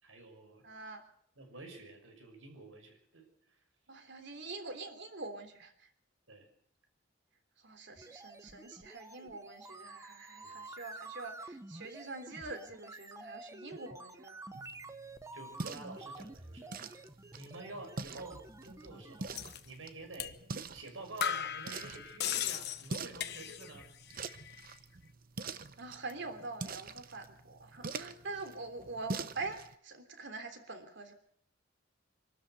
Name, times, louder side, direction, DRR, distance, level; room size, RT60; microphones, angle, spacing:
voice 1, 0.0-0.7 1.4-3.6 6.3-6.5 10.4-10.6 15.3-17.1 17.3-20.4 20.7-23.9, right 2 dB, 85° right, 5 dB, 6.1 m, -49 dB
voice 2, 0.6-1.0 3.9-5.9 7.6-14.4 25.8-31.1, right 3 dB, 65° right, 7 dB, 3.3 m, -44 dB
sound 1, 8.0-19.5, right 2 dB, 15° right, 0.9 m, -50 dB
sound 2, 14.5-29.8, right 4 dB, 50° right, 0.9 m, -45 dB
sound 3, 19.3-19.6 20.2-20.4 20.7-20.8 21.2-23.8 24.1-24.7, left 9 dB, 60° left, 1.1 m, -37 dB
25.0 x 13.0 x 8.1 m, 0.65 s
head